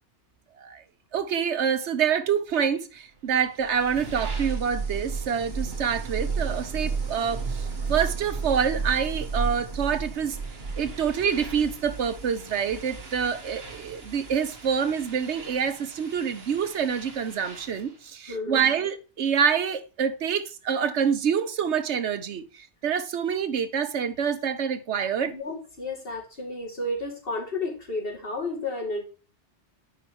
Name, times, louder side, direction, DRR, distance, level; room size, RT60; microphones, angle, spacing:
voice 1, 1.1-10.4 10.8-25.3, right 7 dB, 85° right, 1.2 m, -26 dB
sound 1, 3.3-18.0, right 4 dB, 60° right, 1.7 m, -34 dB
voice 2, 18.3-18.7 25.3-29.0, left 2 dB, 55° left, 2.7 m, -32 dB
10.5 x 5.1 x 2.9 m
omnidirectional pair, 1.1 m